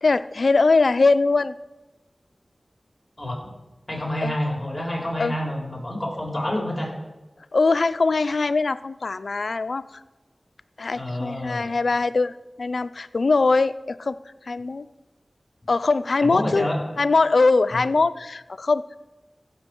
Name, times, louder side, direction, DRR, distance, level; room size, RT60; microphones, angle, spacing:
voice 1, 0.0-1.5 4.2-4.4 5.2-5.3 7.5-9.8 10.8-14.2 14.5-14.9 15.7-16.6 17.0-19.0, left 3 dB, 80° left, 15 dB, 0.3 m, -21 dB
voice 2, 3.9-6.9 10.9-11.7 16.2-16.8 17.7-17.8, left 1 dB, 20° left, 0 dB, 3.1 m, -28 dB
15.5 x 6.3 x 4.4 m, 1.1 s
wide cardioid pair, 45°, 0 cm